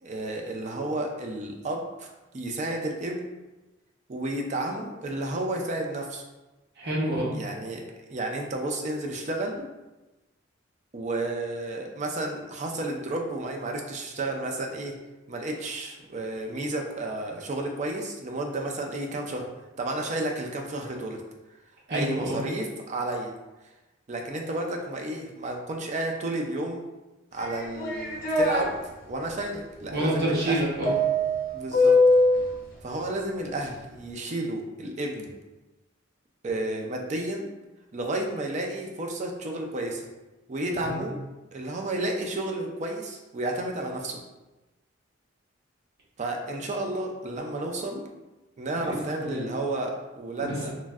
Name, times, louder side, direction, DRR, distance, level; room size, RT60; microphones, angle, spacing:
voice 1, 0.0-3.2 4.1-6.2 7.3-9.7 10.9-14.9 15.3-19.4 19.8-21.2 21.9-23.3 24.1-26.8 27.3-28.7 29.0-30.6 31.5-32.0 32.8-35.3 36.4-37.5 37.9-40.0 40.5-41.2 41.5-44.2 46.2-48.0 48.6-50.7, right 2 dB, 35° right, 1 dB, 0.4 m, -32 dB
voice 2, 6.8-7.3 21.9-22.4 29.9-31.0 40.9-41.0 48.7-49.4 50.4-50.7, right 1 dB, 55° right, -4 dB, 0.7 m, -28 dB
sound 1, 27.4-28.7 30.8-32.5, left 1 dB, 45° left, 0.6 m, -21 dB
3.1 x 2.5 x 2.3 m, 1.1 s
head